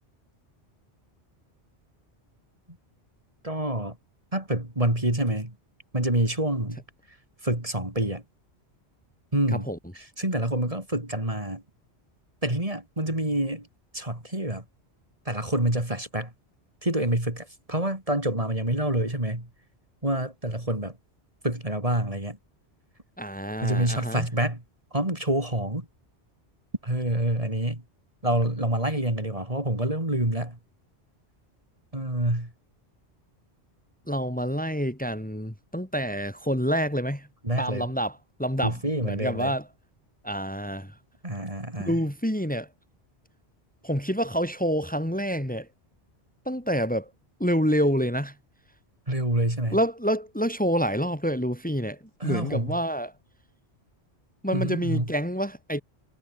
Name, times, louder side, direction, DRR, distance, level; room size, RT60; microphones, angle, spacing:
voice 1, 3.4-4.0 4.3-5.5 5.9-6.8 7.4-8.2 9.3-9.7 10.2-11.6 12.4-13.7 13.9-14.6 15.3-16.3 16.8-19.5 20.0-21.0 21.4-22.4 23.6-24.6 24.9-25.9 26.8-27.8 28.2-30.6 31.9-32.5 37.4-37.9 38.6-39.5 41.2-42.0 49.1-49.8 52.2-52.8 54.5-55.1, right 1 dB, 30° right, 4.4 m, -27 dB
voice 2, 23.2-24.3 34.1-37.3 37.6-39.7 40.2-40.9 41.8-42.7 43.8-45.7 46.4-47.1 47.4-48.3 49.7-53.1 54.4-55.8, equal, 5° left, 3.2 m, -27 dB
omnidirectional pair, 1.1 m